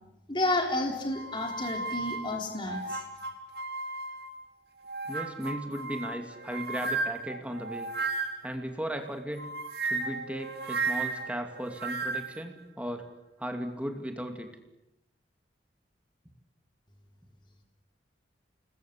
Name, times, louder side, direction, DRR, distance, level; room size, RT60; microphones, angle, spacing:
voice 1, 0.3-3.0, left 2 dB, 25° left, 2 dB, 3.5 m, -31 dB
sound 1, 1.1-4.4 4.8-8.6 9.4-12.4, right 3 dB, 60° right, 2.7 m, -34 dB
voice 2, 5.1-7.9 8.4-9.5 9.8-13.0 13.4-14.5, equal, 5° right, 5 dB, 2.4 m, -36 dB
29.0 x 21.0 x 8.4 m, 0.92 s
head